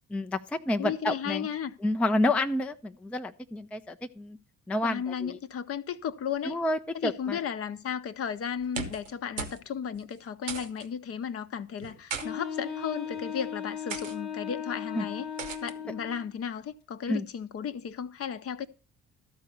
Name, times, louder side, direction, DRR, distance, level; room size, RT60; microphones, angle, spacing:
voice 1, 0.1-1.5 1.8-4.4 4.7-5.4 6.4-7.4 14.9-15.1 17.1-17.3, left 1 dB, 5° left, 0.4 m, -29 dB
voice 2, 0.8-1.7 4.8-6.6 7.0-15.3 15.6-18.7, left 8 dB, 40° left, 0.7 m, -34 dB
sound 1, 8.6-9.1 9.4-9.6 9.9-10.0 10.5-10.9 11.8-12.3 13.0-13.3 13.9-14.2 15.4-15.7, right 5 dB, 80° right, 0.9 m, -37 dB
Wind instrument woodwind instrument, 12.2-16.3, left 7 dB, 60° left, 1.0 m, -37 dB
13.0 x 4.5 x 6.7 m
figure-of-eight pair, 45°, 37 cm